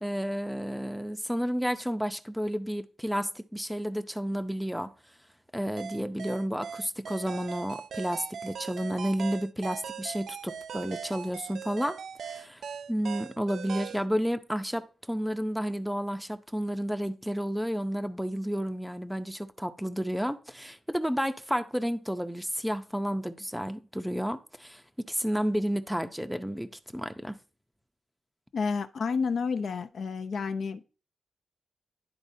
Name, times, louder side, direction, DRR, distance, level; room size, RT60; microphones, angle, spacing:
voice 1, 0.0-4.9 5.5-12.0 12.2-12.6 12.9-24.8 25.1-27.4, equal, ahead, 0.6 m, -31 dB
sound 1, 5.8-14.1, right 7 dB, 75° right, 0.3 m, -40 dB
voice 2, 28.5-30.8, left 5 dB, 65° left, 0.6 m, -30 dB
11.5 x 4.2 x 2.7 m
wide cardioid pair, 115°, 0 cm